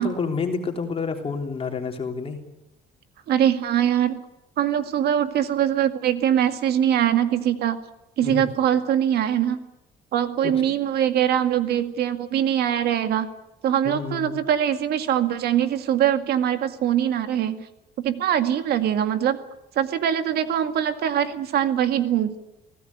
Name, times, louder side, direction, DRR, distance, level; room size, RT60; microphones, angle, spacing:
voice 1, 0.0-2.4 8.2-8.4 10.4-10.5 13.8-14.4, left 5 dB, 35° left, 3 dB, 3.3 m, -29 dB
voice 2, 3.3-4.2 4.6-7.8 8.2-9.6 10.1-13.3 13.6-17.7 18.0-19.4 19.8-22.4, right 10 dB, 70° right, 9 dB, 2.1 m, -22 dB
24.0 x 17.0 x 9.7 m, 0.90 s
cardioid pair, 110°, 17 cm